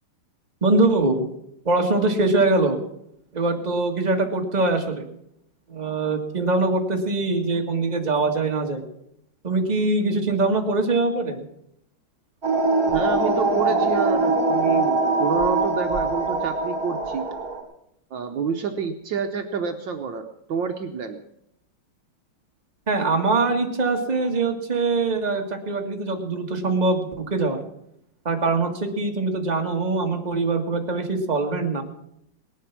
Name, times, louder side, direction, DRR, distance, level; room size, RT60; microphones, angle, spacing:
voice 1, 0.6-1.2 1.7-2.8 3.3-5.1 5.7-8.8 9.4-11.5 22.9-27.6 28.3-31.8, right 3 dB, 20° right, 3 dB, 1.8 m, -23 dB
sound 1, 12.4-17.6, right 2 dB, 45° right, 3.1 m, -22 dB
voice 2, 12.9-17.2 18.1-21.2, right 6 dB, 65° right, 6 dB, 1.6 m, -28 dB
18.5 x 11.5 x 6.0 m, 0.78 s
omnidirectional pair, 2.3 m